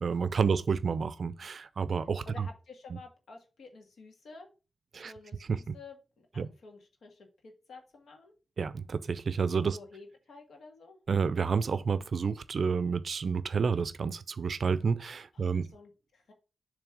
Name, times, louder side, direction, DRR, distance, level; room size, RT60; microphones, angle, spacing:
voice 1, 0.0-2.5 4.9-5.1 5.5-5.7 6.4-6.5 8.6-9.8 11.1-15.7, right 5 dB, 50° right, 0.4 m, -30 dB
voice 2, 2.0-4.5 5.0-8.3 9.7-11.0 15.3-16.3, left 3 dB, 80° left, 1.7 m, -51 dB
7.1 x 3.2 x 4.8 m
wide cardioid pair, 150°, 0 cm